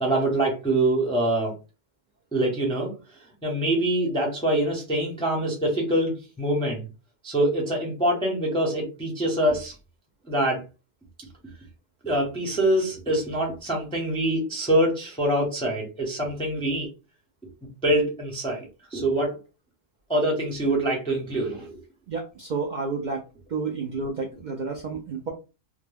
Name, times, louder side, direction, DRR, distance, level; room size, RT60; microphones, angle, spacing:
voice 1, 0.0-1.5 2.3-2.9 3.4-6.9 7.2-9.7 10.3-10.6 12.0-16.9 17.8-18.7 18.9-19.4 20.1-21.8, right 1 dB, 5° left, -2 dB, 0.5 m, -24 dB
voice 2, 22.1-23.2 23.5-25.3, right 4 dB, 85° right, 1 dB, 0.4 m, -30 dB
2.2 x 2.1 x 3.2 m, 0.30 s
omnidirectional pair, 1.3 m